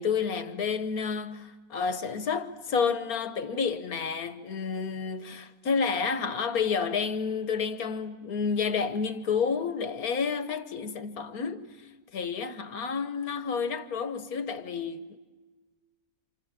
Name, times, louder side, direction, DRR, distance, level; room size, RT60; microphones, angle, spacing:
voice 1, 0.0-11.8 12.1-15.2, left 6 dB, 60° left, 1.5 m, -30 dB
28.0 x 28.0 x 7.4 m
omnidirectional pair, 1.8 m